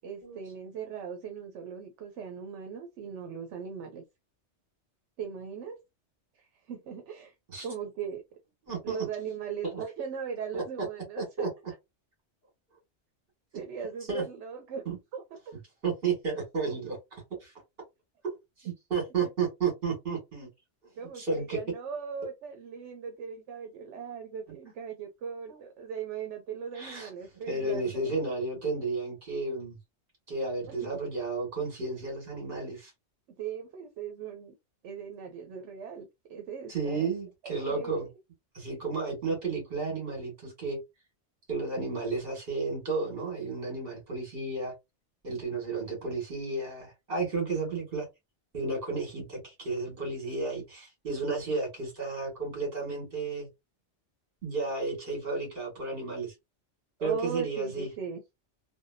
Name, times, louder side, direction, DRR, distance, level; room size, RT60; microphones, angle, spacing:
voice 1, 0.0-4.0 5.2-5.8 6.3-7.3 7.6-8.2 8.8-11.5 13.5-14.8 15.1-15.2 21.0-28.2 30.7-30.8 33.4-34.5 34.8-37.1 37.4-38.1 57.0-58.2, right 6 dB, 80° right, 0.9 m, -39 dB
voice 2, 8.7-9.1 9.6-9.8 10.5-10.6 11.2-11.5 14.1-14.2 14.9-15.0 15.8-17.5 18.2-20.5 21.2-21.6 25.5-25.6 26.7-27.1 27.3-29.8 30.3-32.9 36.7-38.1 38.5-40.8 41.5-44.7 45.2-48.1 48.5-53.5 54.4-56.3 57.0-57.9, right 3 dB, 55° right, 1.9 m, -32 dB
3.5 x 2.2 x 2.5 m
omnidirectional pair, 1.2 m